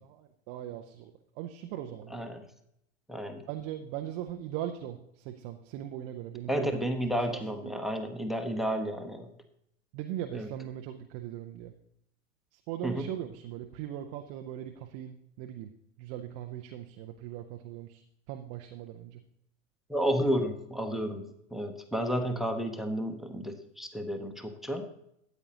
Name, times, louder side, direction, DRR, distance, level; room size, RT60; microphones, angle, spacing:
voice 1, 0.0-2.2 3.5-6.8 7.3-7.8 9.9-11.7 12.5-15.7 16.0-18.0 18.3-19.2, right 11 dB, 20° right, 5 dB, 0.3 m, -40 dB
voice 2, 2.1-2.4 3.1-3.4 6.5-9.3 10.3-10.5 12.8-13.1 19.9-24.9, equal, ahead, 7 dB, 0.7 m, -32 dB
13.0 x 8.8 x 2.9 m, 0.75 s
figure-of-eight pair, 95°, 38 cm